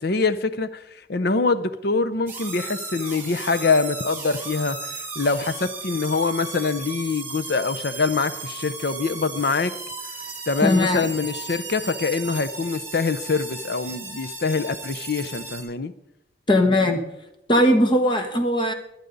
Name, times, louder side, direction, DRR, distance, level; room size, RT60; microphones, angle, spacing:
voice 1, 0.0-9.7 10.5-15.9, left 4 dB, 60° left, 11 dB, 0.7 m, -24 dB
sound 1, 2.3-15.6, right 4 dB, 10° right, 2.7 m, -35 dB
voice 2, 10.6-11.1 16.5-17.0 17.5-18.7, left 1 dB, 25° left, 6 dB, 1.3 m, -19 dB
24.0 x 8.2 x 4.0 m, 0.85 s
head